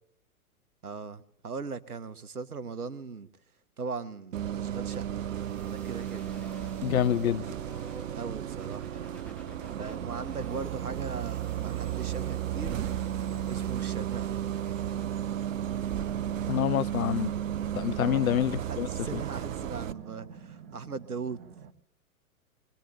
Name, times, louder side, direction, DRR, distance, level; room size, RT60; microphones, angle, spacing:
voice 1, 0.8-3.3 3.8-5.0 5.7-6.2 8.1-9.3 9.8-12.8 13.5-14.4 18.0-21.4, right 4 dB, 80° right, 1.1 m, -39 dB
Bus, 4.3-19.9, right 10 dB, 60° right, 0.7 m, -34 dB
sound 1, 5.2-16.5, right 1 dB, 5° left, 2.2 m, -54 dB
voice 2, 6.8-7.5 16.5-17.3 17.7-19.2, left 10 dB, 70° left, 0.5 m, -27 dB
sound 2, 7.4-21.7, right 7 dB, 35° right, 1.1 m, -51 dB
24.5 x 18.5 x 2.9 m
figure-of-eight pair, 105°, 44 cm